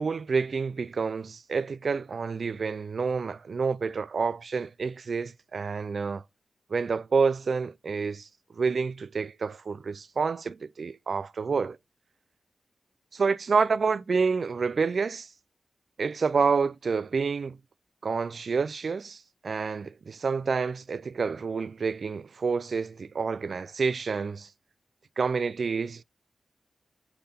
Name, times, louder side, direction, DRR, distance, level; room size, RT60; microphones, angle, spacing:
voice 1, 0.0-6.2 6.7-8.3 8.5-11.8 13.1-15.3 16.0-17.6 18.0-24.5 25.2-26.0, right 5 dB, 65° right, 0.3 m, -28 dB
7.6 x 3.8 x 4.2 m
cardioid pair, 60°, 0 cm